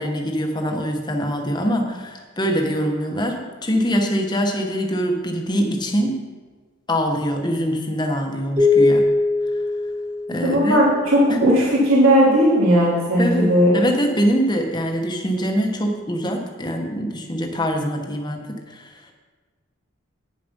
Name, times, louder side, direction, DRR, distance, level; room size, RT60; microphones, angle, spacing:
voice 1, 0.0-6.3 6.9-9.1 10.3-10.8 11.3-11.4 13.2-19.0, equal, 20° left, 3 dB, 1.1 m, -23 dB
sound 1, 8.6-11.1, left 3 dB, 30° right, 2.8 m, -20 dB
voice 2, 10.4-13.7, equal, 80° right, -6 dB, 2.9 m, -16 dB
9.5 x 7.0 x 5.4 m, 1.4 s
head